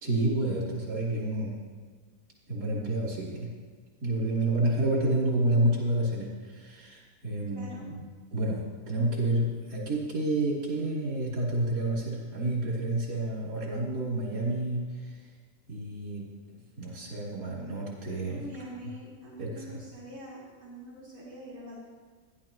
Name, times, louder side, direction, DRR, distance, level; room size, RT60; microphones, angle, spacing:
voice 1, 0.0-1.6 2.5-3.6 4.0-8.0 8.3-15.1 15.7-16.4 16.8-18.4 19.4-19.8, right 1 dB, 70° right, -5 dB, 3.6 m, -29 dB
voice 2, 7.5-7.9 18.3-21.8, equal, 50° right, -10 dB, 3.4 m, -44 dB
16.0 x 11.0 x 3.0 m, 1.5 s
omnidirectional pair, 1.8 m